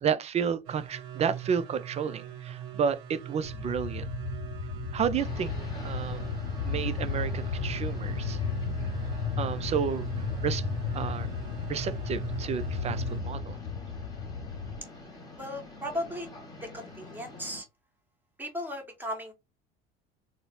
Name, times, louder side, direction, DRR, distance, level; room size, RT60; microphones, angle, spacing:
voice 1, 0.0-4.1 4.9-5.5 5.8-6.2 6.6-8.4 9.4-10.6 10.9-11.3 11.7-13.6, right 7 dB, 20° right, 0.3 m, -31 dB
sound 1, 0.6-13.2, right 9 dB, 60° right, 0.8 m, -41 dB
sound 2, 3.4-14.8, left 5 dB, 55° left, 0.5 m, -34 dB
sound 3, 5.1-17.6, left 3 dB, 10° left, 1.5 m, -47 dB
voice 2, 15.4-16.3 16.6-17.6 18.4-19.3, left 1 dB, 5° right, 1.3 m, -36 dB
3.8 x 2.0 x 2.8 m
figure-of-eight pair, 65°, 31 cm